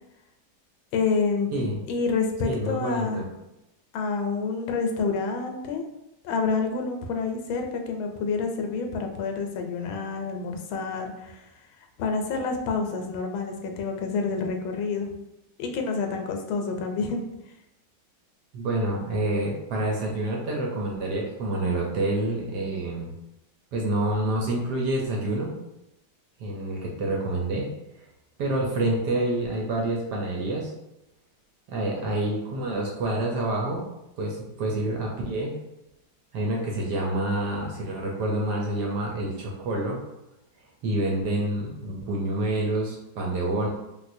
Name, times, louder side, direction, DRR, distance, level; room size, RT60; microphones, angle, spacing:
voice 1, 0.9-1.5 1.9-3.2 3.9-5.8 6.2-11.4 12.0-15.1 15.6-17.2, left 4 dB, 85° left, 4 dB, 1.3 m, -28 dB
voice 2, 2.4-3.2 18.5-23.1 23.7-25.5 26.4-27.7 28.4-30.7 31.7-33.8 34.2-35.5 36.3-40.0 40.8-43.7, right 1 dB, 70° right, -1 dB, 1.0 m, -27 dB
3.5 x 2.6 x 2.5 m, 0.90 s
omnidirectional pair, 2.2 m